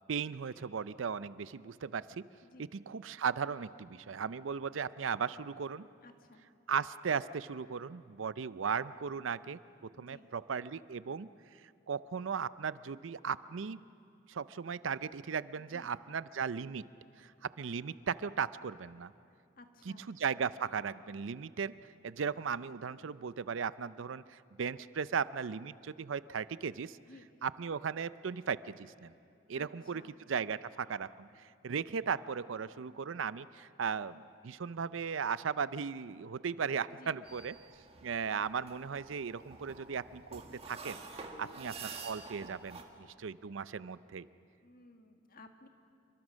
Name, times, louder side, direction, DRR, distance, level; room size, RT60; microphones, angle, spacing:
voice 1, 0.1-2.2 2.7-5.9 6.7-11.3 11.9-13.8 14.3-16.8 17.2-19.1 19.9-21.7 22.0-27.0 27.4-29.1 29.5-30.0 30.3-37.5 38.0-44.3, right 6 dB, 75° right, 16 dB, 0.5 m, -37 dB
voice 2, 6.0-6.5 9.9-10.3 15.6-15.9 19.6-20.1 27.0-27.3 29.5-30.1 36.9-37.2 41.3-41.6 44.6-45.7, left 2 dB, 50° left, 6 dB, 1.7 m, -57 dB
sound 1, 37.2-42.8, right 4 dB, 30° right, 1.8 m, -48 dB
28.0 x 23.5 x 6.3 m, 2.5 s
head